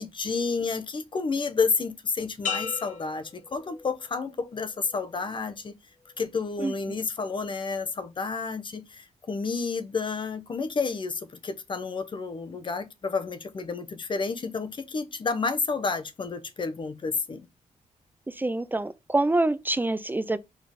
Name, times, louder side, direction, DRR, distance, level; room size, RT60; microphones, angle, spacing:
voice 1, 0.0-5.7 6.2-17.4, left 4 dB, 40° left, 0.9 m, -30 dB
sound 1, 2.4-4.2 4.7-5.2, left 6 dB, 80° left, 1.3 m, -36 dB
voice 2, 18.4-20.4, right 2 dB, 15° right, 0.4 m, -26 dB
5.3 x 3.8 x 5.1 m
wide cardioid pair, 120°, 13 cm